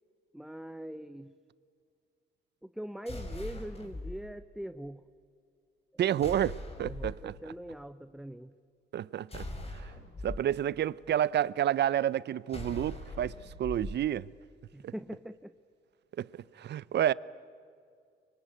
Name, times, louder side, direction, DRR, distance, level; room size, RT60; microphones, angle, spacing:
voice 1, 0.3-1.3 2.6-5.0 6.8-8.5 14.7-15.5, right 1 dB, ahead, 0.8 m, -42 dB
sound 1, 3.1-4.2 6.2-7.2 9.3-10.4 12.5-14.0, left 2 dB, 30° left, 4.0 m, -40 dB
voice 2, 6.0-7.4 8.9-9.4 9.8-9.9 10.2-14.3 14.8-14.9 16.2-16.3 16.6-17.1, right 11 dB, 60° right, 0.7 m, -30 dB
25.0 x 24.0 x 9.6 m
cardioid pair, 90°, 20 cm